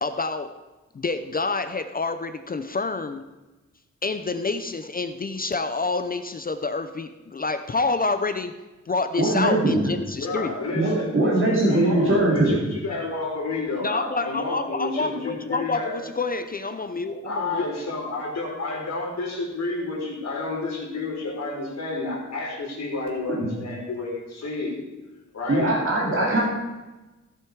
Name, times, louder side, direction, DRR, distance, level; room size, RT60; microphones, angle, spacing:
voice 1, 0.0-0.6 0.9-3.2 4.0-8.6 8.9-10.6 13.8-17.7, left 3 dB, 30° left, 10 dB, 0.5 m, -28 dB
voice 2, 9.2-9.9 10.7-12.6 23.3-23.5 25.5-26.4, right 1 dB, 45° right, -5 dB, 2.7 m, -21 dB
voice 3, 10.2-11.3 11.7-16.0 17.2-24.8 25.3-25.7 26.1-26.4, left 3 dB, 60° left, -2 dB, 3.7 m, -30 dB
16.0 x 6.9 x 4.6 m, 1.1 s
wide cardioid pair, 160°, 30 cm